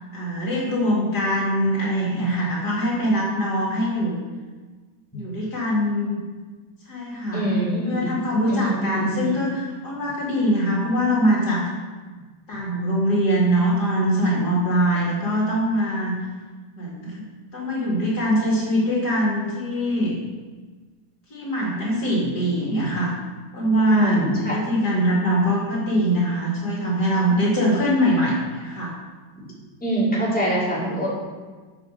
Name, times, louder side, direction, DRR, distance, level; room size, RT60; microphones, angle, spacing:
voice 1, 0.1-4.2 5.1-6.2 6.9-7.5 7.8-11.7 12.5-16.1 16.8-17.3 17.5-20.2 21.3-23.1 23.5-24.2 24.5-28.9, equal, 60° left, -5 dB, 2.9 m, -22 dB
voice 2, 7.3-8.1 8.5-9.4 23.9-24.5 29.8-31.1, right 1 dB, 5° left, -9 dB, 3.8 m, -24 dB
9.5 x 6.8 x 6.5 m, 1.4 s
omnidirectional pair, 1.9 m